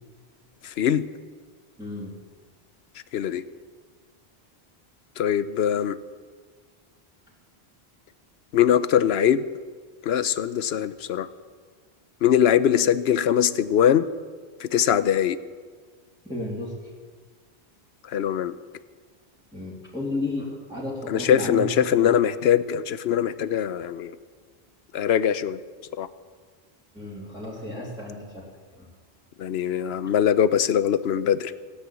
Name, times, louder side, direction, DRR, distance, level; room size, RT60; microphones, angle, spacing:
voice 1, 0.6-1.1 3.1-3.4 5.2-6.0 8.5-9.5 10.0-11.3 12.2-14.1 14.6-15.4 18.0-18.6 21.1-24.2 24.9-25.6 26.0-26.1 29.4-31.5, left 9 dB, 75° left, 15 dB, 0.9 m, -22 dB
voice 2, 1.8-2.2 16.2-16.9 19.5-21.7 22.0-22.1 26.9-28.5 28.8-28.9, left 2 dB, 5° right, -6 dB, 2.9 m, -33 dB
16.5 x 10.0 x 8.3 m, 1.5 s
omnidirectional pair, 1.1 m